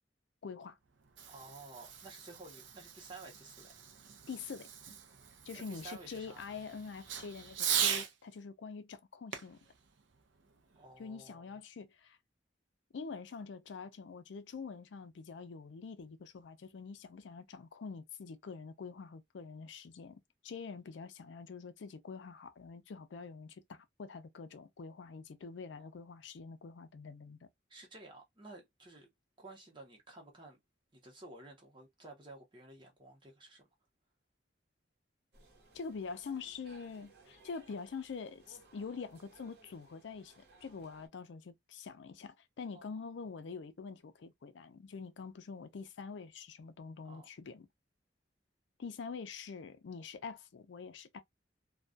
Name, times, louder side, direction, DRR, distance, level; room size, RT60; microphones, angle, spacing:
voice 1, 0.4-0.8 4.3-4.7 5.5-9.6 11.0-12.2 12.9-27.5 35.7-47.7 48.8-51.2, left 5 dB, 80° left, 0.4 m, -45 dB
Fireworks, 0.9-8.1 9.3-10.9, right 8 dB, 85° right, 0.5 m, -40 dB
voice 2, 1.3-3.8 5.5-6.6 10.7-11.6 25.8-25.9 27.7-29.1 29.4-30.6 30.9-33.6 42.7-43.1 47.0-47.3, right 2 dB, 25° right, 0.8 m, -53 dB
sound 1, 35.3-41.1, right 3 dB, 60° right, 0.9 m, -62 dB
2.2 x 2.2 x 2.5 m
head